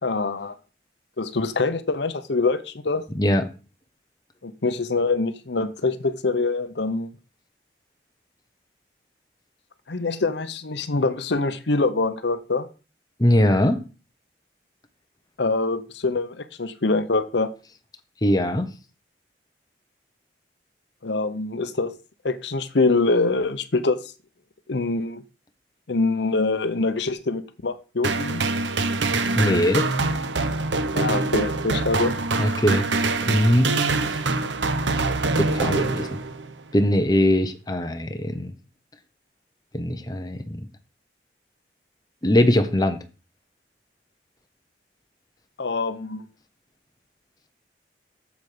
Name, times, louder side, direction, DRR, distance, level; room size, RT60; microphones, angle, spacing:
voice 1, 0.0-0.5 1.2-3.0 4.4-7.1 9.9-12.7 15.4-17.5 21.0-21.9 22.2-24.0 24.7-25.2 25.9-28.4 31.0-32.1 45.6-46.2, left 3 dB, 75° left, 0.8 m, -24 dB
voice 2, 13.2-13.8 18.2-18.7 29.3-29.9 32.4-33.7 35.4-36.2 36.7-38.5 39.7-40.6 42.2-43.0, left 1 dB, 20° left, 0.9 m, -21 dB
sound 1, 28.0-36.5, right 3 dB, 85° right, 1.0 m, -24 dB
8.0 x 7.3 x 5.1 m
head